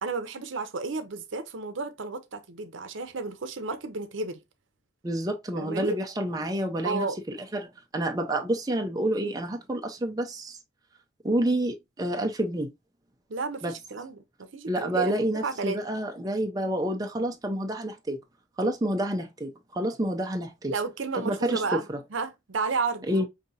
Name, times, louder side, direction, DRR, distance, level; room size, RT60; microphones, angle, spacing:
voice 1, 0.0-4.4 5.6-6.0 6.8-7.2 13.3-15.8 20.7-21.8 22.1-23.1, right 4 dB, 75° right, 0.7 m, -32 dB
voice 2, 5.0-10.6 11.2-12.7 13.6-13.8 14.7-18.2 18.6-20.7 21.1-22.0 23.1-23.3, right 1 dB, 20° right, 0.5 m, -29 dB
5.0 x 2.7 x 2.7 m
head